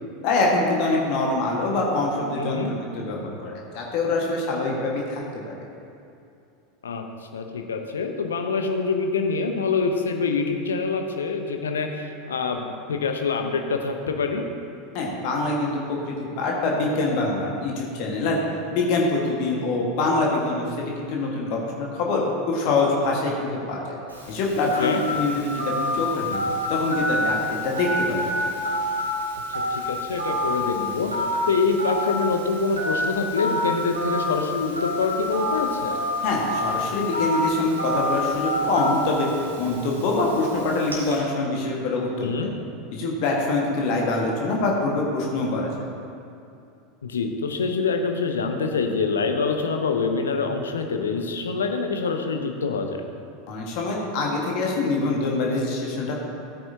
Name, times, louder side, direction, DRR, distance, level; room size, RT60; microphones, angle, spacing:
voice 1, 0.2-5.2 5.5-5.6 14.9-18.4 18.7-24.0 24.3-26.4 26.7-27.4 27.6-28.4 36.2-39.3 39.6-42.5 42.9-45.9 53.5-56.2, left 2 dB, 50° left, -2 dB, 1.5 m, -25 dB
voice 2, 2.3-2.7 6.8-14.4 24.6-25.0 29.5-36.0 42.2-42.5 47.0-53.0, left 4 dB, 70° left, 5 dB, 0.8 m, -25 dB
Telephone, 24.1-41.1, left 1 dB, 85° right, 1.7 m, -28 dB
14.5 x 8.8 x 2.8 m, 2.6 s
figure-of-eight pair, 80°, 0 cm